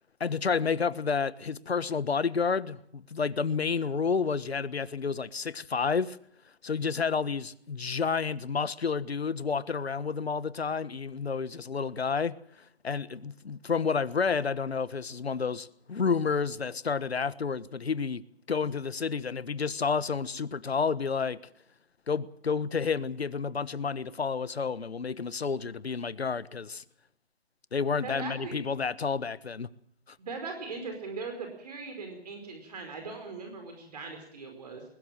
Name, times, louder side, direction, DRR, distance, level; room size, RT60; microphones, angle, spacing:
voice 1, 0.2-6.2 6.6-12.3 12.8-18.2 18.5-21.4 22.1-26.8 27.7-29.7, left 5 dB, 80° left, 1.4 m, -30 dB
voice 2, 28.0-28.6 30.2-34.8, right 4 dB, 40° right, 5.0 m, -39 dB
21.5 x 20.0 x 7.4 m
hypercardioid pair, 160°, 31 cm